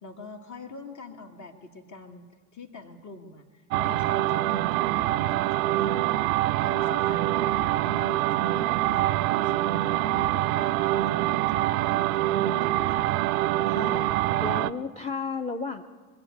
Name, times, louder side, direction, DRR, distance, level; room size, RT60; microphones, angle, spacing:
voice 1, 0.0-2.2 2.5-3.4 3.8-6.0 6.6-13.1, left 3 dB, 40° left, 3 dB, 2.0 m, -44 dB
sound 1, 3.7-14.7, right 15 dB, 70° right, 0.6 m, -25 dB
voice 2, 13.6-14.1 14.4-15.8, left 4 dB, 15° left, 5 dB, 0.8 m, -33 dB
23.5 x 8.3 x 6.7 m, 1.4 s
figure-of-eight pair, 50°, 43 cm